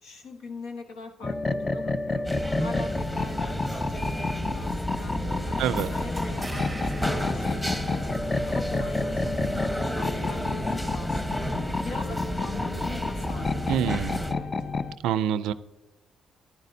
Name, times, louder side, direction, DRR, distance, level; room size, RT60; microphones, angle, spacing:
voice 1, 0.0-2.3 2.6-8.0 8.5-11.5 11.8-14.7, left 3 dB, 85° left, 3 dB, 1.2 m, -41 dB
sound 1, 1.2-14.9, left 3 dB, 25° left, 0.5 m, -30 dB
sound 2, 2.2-14.3, equal, 10° left, 1.2 m, -32 dB
sound 3, 5.8-8.5, right 2 dB, 10° right, 0.7 m, -41 dB
voice 2, 13.7-14.2 15.0-15.5, right 10 dB, 90° right, 15 dB, 0.4 m, -26 dB
11.5 x 10.5 x 2.7 m, 0.98 s
cardioid pair, 90°, 0 cm